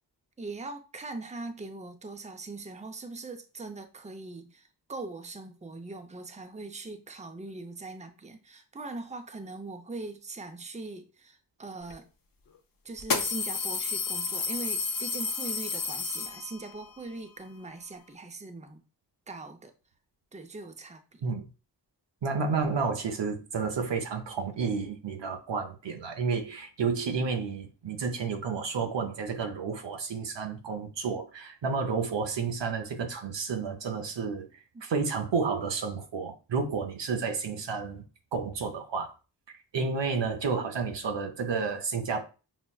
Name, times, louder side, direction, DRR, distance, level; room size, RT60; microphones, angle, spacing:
voice 1, 0.4-12.1 12.8-18.8 19.3-19.7 20.3-21.2 34.7-34.8, right 3 dB, 15° right, 0.5 m, -41 dB
sound 1, 11.9-12.0 13.0-16.8, left 4 dB, 55° left, 0.6 m, -31 dB
voice 2, 22.2-38.0 38.3-39.1 39.7-42.2, right 5 dB, 90° right, 0.7 m, -31 dB
5.6 x 2.1 x 2.3 m
cardioid pair, 45°, 42 cm